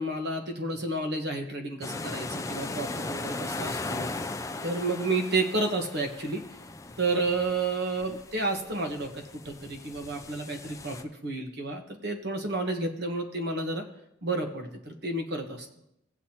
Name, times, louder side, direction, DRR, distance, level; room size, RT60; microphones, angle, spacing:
voice 1, 0.0-4.1 4.6-6.5 7.0-13.8 14.2-15.7, right 2 dB, 50° right, 3 dB, 1.2 m, -31 dB
sound 1, 1.8-11.0, left 3 dB, 15° left, 0.4 m, -38 dB
17.5 x 7.9 x 2.9 m, 0.79 s
head